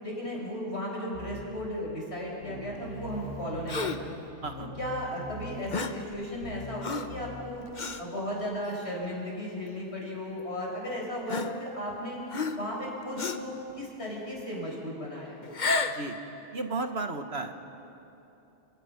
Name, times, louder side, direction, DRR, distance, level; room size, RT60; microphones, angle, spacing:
voice 1, 0.0-4.1 4.6-7.6 8.0-12.2 12.6-15.4, equal, 65° left, -3 dB, 6.9 m, -35 dB
sound 1, 1.1-1.7 2.1-2.2 2.4-7.8, right 1 dB, 85° right, 5.3 m, -43 dB
Gasp, 3.7-4.1 5.7-6.1 6.8-7.2 7.8-8.0 8.7-8.9 10.0-10.1 11.3-11.9 12.3-12.8 13.2-13.5 15.4-16.1, left 3 dB, 40° left, 1.1 m, -31 dB
voice 2, 15.8-16.2 16.5-17.5, right 3 dB, 60° right, 6 dB, 1.7 m, -34 dB
29.5 x 29.5 x 6.0 m, 2.9 s
omnidirectional pair, 1.2 m